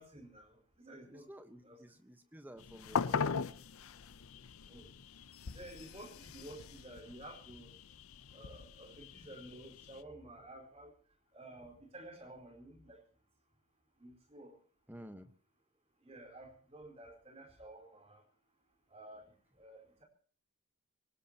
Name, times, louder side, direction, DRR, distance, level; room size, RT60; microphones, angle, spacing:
voice 1, 0.0-1.3 1.6-1.8 4.7-4.9 5.5-7.7 8.3-10.9 11.3-13.0 14.0-14.5 16.0-18.2 18.9-19.2 19.6-20.0, right 1 dB, 30° right, 3 dB, 4.5 m, -52 dB
voice 2, 1.0-3.4 14.9-15.3, equal, 10° right, 8 dB, 1.2 m, -53 dB
sound 1, 2.6-10.0, left 5 dB, 90° left, 0.6 m, -40 dB
24.0 x 18.5 x 2.9 m, 0.43 s
head